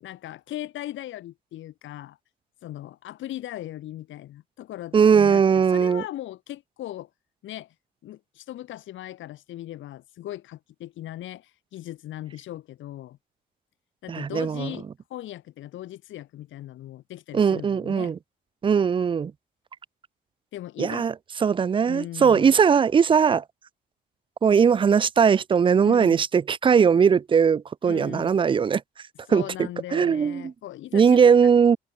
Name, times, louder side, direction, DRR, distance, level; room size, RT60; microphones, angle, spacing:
voice 1, 0.0-2.2 2.6-7.1 7.4-7.7 8.0-13.2 14.0-18.1 20.5-21.1 21.8-22.5 25.8-26.2 27.9-28.3 29.2-31.5, left 13 dB, 75° left, 1.0 m, -38 dB
voice 2, 4.9-6.0 14.1-14.7 17.3-18.2 18.6-19.3 20.8-21.1 21.4-23.4 24.4-28.8 29.3-30.5 30.9-31.8, right 6 dB, 25° right, 0.3 m, -19 dB
open air
cardioid pair, 90°, 20 cm